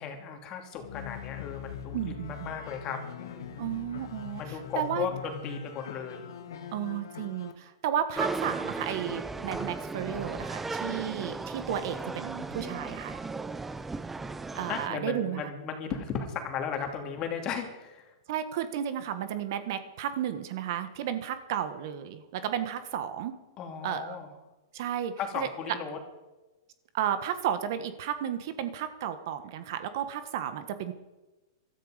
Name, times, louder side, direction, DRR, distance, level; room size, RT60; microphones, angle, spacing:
voice 1, 0.0-3.6 4.4-6.7 14.7-18.1 23.6-24.3 25.2-26.0, left 7 dB, 30° left, 4 dB, 2.7 m, -36 dB
sound 1, 0.7-7.5, left 9 dB, 80° left, 2.0 m, -42 dB
voice 2, 1.9-2.5 3.6-5.1 6.7-13.2 14.5-15.4 18.3-23.3 23.8-24.1 24.7-25.5 26.9-30.9, right 10 dB, 55° right, 11 dB, 1.4 m, -33 dB
sound 2, 8.2-14.9, right 3 dB, 10° right, 0.5 m, -36 dB
17.0 x 13.5 x 5.1 m, 1.1 s
hypercardioid pair, 145°, 2 cm